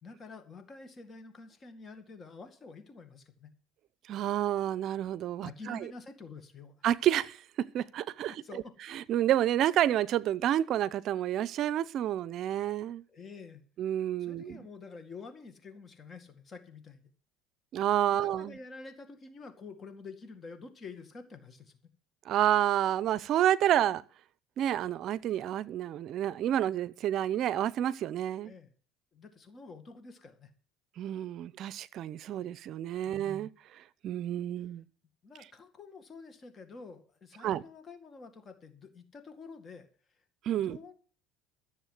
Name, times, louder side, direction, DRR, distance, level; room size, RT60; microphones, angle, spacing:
voice 1, 0.0-3.5 5.4-6.8 8.4-8.7 13.1-13.7 14.2-17.1 18.1-21.8 28.4-28.7 29.1-30.5 33.0-33.5 34.6-34.7 35.2-39.9 40.6-40.9, left 4 dB, 30° left, 2.0 m, -48 dB
voice 2, 4.1-5.9 6.8-8.3 8.9-13.0 13.8-14.6 17.7-18.6 22.3-24.0 24.6-28.5 31.0-33.5 34.0-34.8 37.4-37.6 40.4-40.8, right 11 dB, 50° right, 0.6 m, -29 dB
14.0 x 7.2 x 7.6 m
cardioid pair, 125°, 0 cm